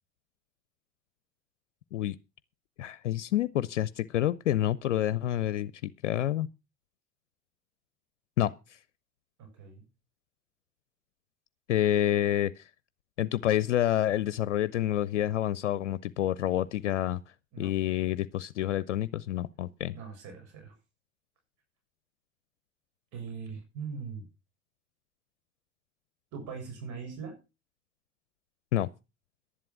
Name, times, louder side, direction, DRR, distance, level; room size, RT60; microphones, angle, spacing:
voice 1, 2.8-6.5 8.4-8.8 11.7-12.7 13.2-17.2 17.6-19.9 28.7-28.9, left 13 dB, 85° left, 0.6 m, -28 dB
voice 2, 9.4-9.8 17.5-17.7 19.9-20.7 23.1-24.3 26.3-27.3, right 5 dB, 55° right, 7.2 m, -41 dB
11.5 x 10.5 x 5.9 m
hypercardioid pair, 65°, 35 cm